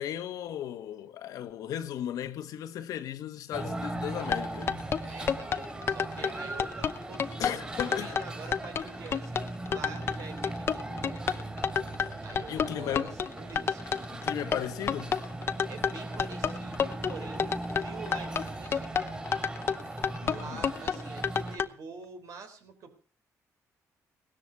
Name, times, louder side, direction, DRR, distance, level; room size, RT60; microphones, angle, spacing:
voice 1, 0.0-4.8 7.4-8.2 12.5-13.2 14.1-15.2 20.2-20.6, left 10 dB, 85° left, 1.4 m, -36 dB
sound 1, 3.5-21.6, right 2 dB, 20° right, 4.3 m, -39 dB
sound 2, 4.2-21.7, left 7 dB, 45° left, 0.8 m, -30 dB
voice 2, 5.1-5.6 5.9-11.4 12.2-14.1 15.7-19.0 20.2-22.9, right 5 dB, 65° right, 4.0 m, -46 dB
17.5 x 13.5 x 4.7 m
cardioid pair, 130°, 6 cm